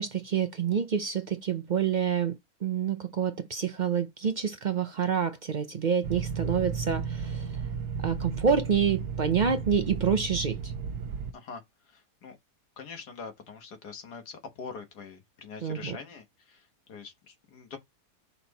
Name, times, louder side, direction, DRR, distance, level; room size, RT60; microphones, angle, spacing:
voice 1, 0.0-2.3 2.6-7.6 8.0-10.7 15.6-16.0, right 7 dB, 65° right, 0.4 m, -27 dB
sound 1, 6.0-11.3, right 6 dB, 85° right, 1.3 m, -34 dB
voice 2, 11.9-12.4 12.8-16.6 16.9-17.8, left 5 dB, 80° left, 1.8 m, -43 dB
5.6 x 4.4 x 4.0 m
omnidirectional pair, 1.7 m